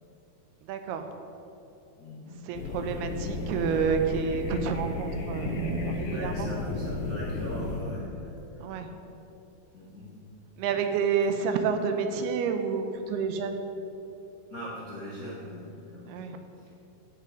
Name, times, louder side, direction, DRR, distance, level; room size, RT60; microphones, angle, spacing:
voice 1, 0.6-1.1 2.4-6.5 8.6-8.9 10.6-13.6 16.1-16.4, right 6 dB, 80° right, 6 dB, 2.7 m, -29 dB
voice 2, 2.0-2.4 2.9-3.0 6.0-9.0 9.7-10.1 14.5-16.1, left 1 dB, 55° left, -8 dB, 0.9 m, -40 dB
sound 1, 2.5-7.8, left 2 dB, 70° left, 2.8 m, -33 dB
16.0 x 5.8 x 5.1 m, 2.8 s
omnidirectional pair, 4.7 m